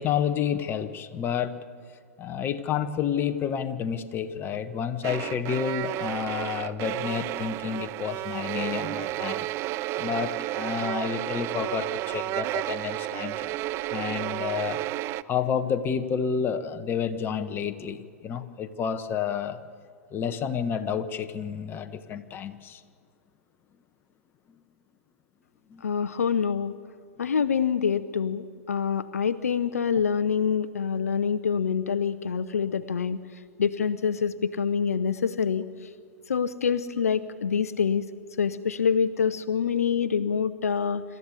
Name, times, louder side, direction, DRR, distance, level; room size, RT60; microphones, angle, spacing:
voice 1, 0.0-1.6 2.2-9.5 10.0-13.6 13.9-14.8 15.2-19.6 20.1-22.8 25.7-25.8, left 7 dB, 25° left, 9 dB, 1.3 m, -30 dB
sound 1, 5.0-15.2, right 16 dB, 35° right, 0.5 m, -32 dB
voice 2, 25.8-26.7 27.2-35.9 36.3-38.1 38.4-41.0, left 6 dB, 75° left, 14 dB, 0.7 m, -26 dB
26.5 x 14.0 x 8.4 m, 2.2 s
figure-of-eight pair, 105°, 8 cm